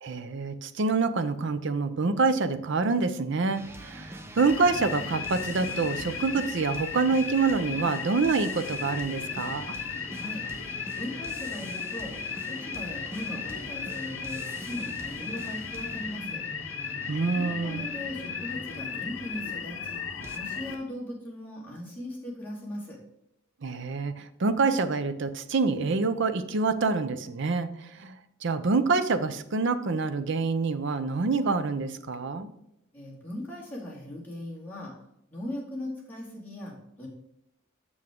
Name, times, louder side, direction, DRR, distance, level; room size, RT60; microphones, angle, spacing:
voice 1, 0.0-9.8 17.1-17.9 23.6-32.5, right 4 dB, 60° right, 12 dB, 0.6 m, -27 dB
sound 1, 3.5-20.4, right 1 dB, 10° right, 0.5 m, -44 dB
sound 2, 4.4-20.8, left 6 dB, 65° left, 0.8 m, -36 dB
voice 2, 10.1-10.4 10.9-12.1 12.5-16.4 17.3-20.0 20.3-23.0 32.9-34.9 35.3-37.1, left 1 dB, 10° left, -6 dB, 2.3 m, -39 dB
7.8 x 6.2 x 3.7 m, 0.82 s
head